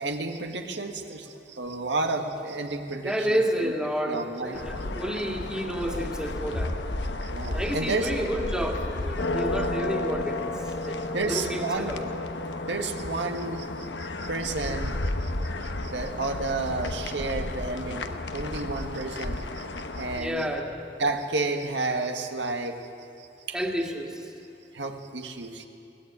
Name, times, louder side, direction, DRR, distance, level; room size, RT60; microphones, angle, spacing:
voice 1, 0.0-3.7 4.1-4.6 7.2-8.1 11.1-11.9 12.7-15.3 15.6-19.7 19.9-20.5 21.0-22.9 23.2-23.6 24.7-25.7, right 3 dB, 85° right, 5 dB, 1.8 m, -31 dB
voice 2, 3.0-6.8 7.5-10.5 10.8-11.0 11.3-12.1 20.2-20.8 23.5-24.3, equal, 5° right, 1 dB, 2.3 m, -30 dB
sound 1, 4.5-20.2, left 2 dB, 80° left, 1.2 m, -32 dB
22.5 x 18.0 x 9.6 m, 2.8 s
head